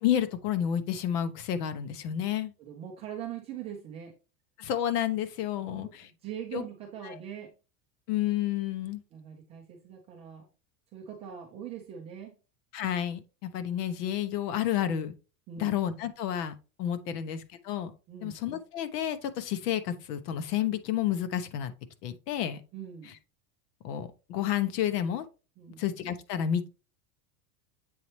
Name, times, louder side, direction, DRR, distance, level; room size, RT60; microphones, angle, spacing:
voice 1, 0.0-2.5 4.6-6.1 6.5-6.6 7.1-7.2 8.1-9.0 12.7-15.1 15.6-17.4 17.6-17.9 18.2-21.7 22.0-22.6 23.8-25.2 25.8-26.7, left 10 dB, 80° left, 1.1 m, -30 dB
voice 2, 2.6-4.1 5.7-7.5 9.1-10.5 10.9-12.4 15.5-15.7 17.1-17.2 18.1-18.3 22.7-23.1 25.6-25.8, right 9 dB, 15° right, 0.3 m, -42 dB
7.7 x 4.2 x 3.2 m
supercardioid pair, 165°, 46 cm